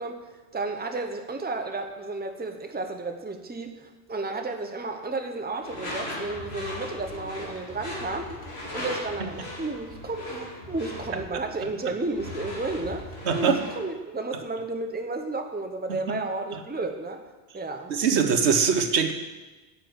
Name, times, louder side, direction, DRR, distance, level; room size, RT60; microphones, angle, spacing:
voice 1, 0.0-8.3 8.7-17.2 17.5-18.0, right 3 dB, 10° right, 5 dB, 0.7 m, -32 dB
Door / Screech, 5.6-13.9, left 1 dB, 70° left, 2.5 m, -38 dB
voice 2, 13.3-13.6 15.9-16.2 17.9-19.1, right 6 dB, 85° right, 7 dB, 1.2 m, -22 dB
9.0 x 7.0 x 8.1 m, 1.2 s
omnidirectional pair, 1.1 m